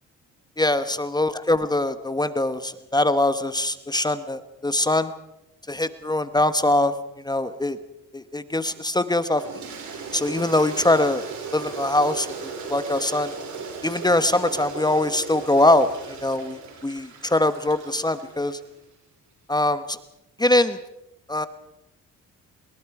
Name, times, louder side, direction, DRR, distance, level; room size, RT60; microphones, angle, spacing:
voice 1, 0.6-5.1 5.7-6.9 7.2-7.8 8.1-9.4 10.1-11.2 11.5-12.3 12.7-13.3 13.8-15.9 16.2-16.6 16.8-18.6 19.5-20.0 20.4-20.8 21.3-21.5, left 1 dB, 15° left, 11 dB, 1.1 m, -22 dB
Toilet flush, 9.4-18.7, right 5 dB, 75° right, 6.2 m, -36 dB
26.0 x 22.0 x 4.8 m, 0.90 s
cardioid pair, 90°, 30 cm